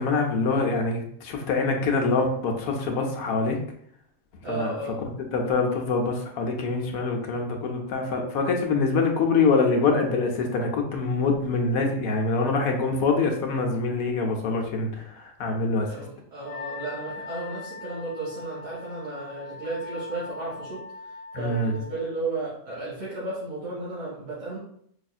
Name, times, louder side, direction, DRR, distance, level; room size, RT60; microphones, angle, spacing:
voice 1, 0.0-3.6 4.5-4.7 5.3-15.9 21.3-21.7, left 4 dB, 90° left, 2 dB, 1.1 m, -25 dB
voice 2, 4.4-5.0 15.8-24.6, right 2 dB, 55° right, -9 dB, 1.7 m, -34 dB
Wind instrument woodwind instrument, 16.4-22.0, left 3 dB, 65° left, 0.4 m, -41 dB
4.8 x 2.6 x 2.3 m, 0.66 s
omnidirectional pair, 1.5 m